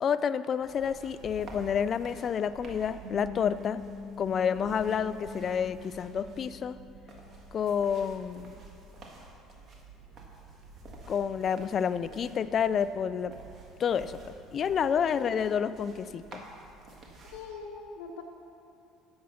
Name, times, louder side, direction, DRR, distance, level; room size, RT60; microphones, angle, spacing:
voice 1, 0.0-3.8 4.2-6.8 7.5-8.5 11.1-13.3 13.8-14.2 14.5-16.4, left 7 dB, 40° left, 14 dB, 0.3 m, -29 dB
sound 1, 0.6-17.5, right 3 dB, 40° right, 1.6 m, -50 dB
sound 2, 3.0-7.7, left 5 dB, 60° right, 2.8 m, -45 dB
voice 2, 15.0-15.4 17.2-18.2, left 5 dB, 85° left, -2 dB, 0.9 m, -43 dB
10.0 x 7.6 x 5.7 m, 2.6 s
cardioid pair, 125°, 0 cm